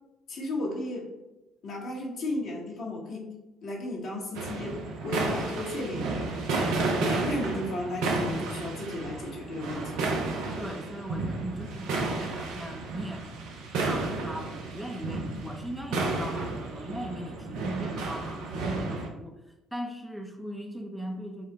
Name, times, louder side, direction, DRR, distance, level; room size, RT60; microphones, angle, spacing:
voice 1, 0.3-1.1 1.6-3.3 3.6-6.3 7.0-10.1, left 1 dB, 60° left, -1 dB, 1.1 m, -34 dB
sound 1, 4.3-19.1, right 3 dB, 70° right, 0.6 m, -32 dB
voice 2, 10.6-13.2 13.9-19.4 19.7-21.5, right 1 dB, 5° right, 3 dB, 0.6 m, -38 dB
5.5 x 2.1 x 4.0 m, 1.0 s
hypercardioid pair, 55°, 0 cm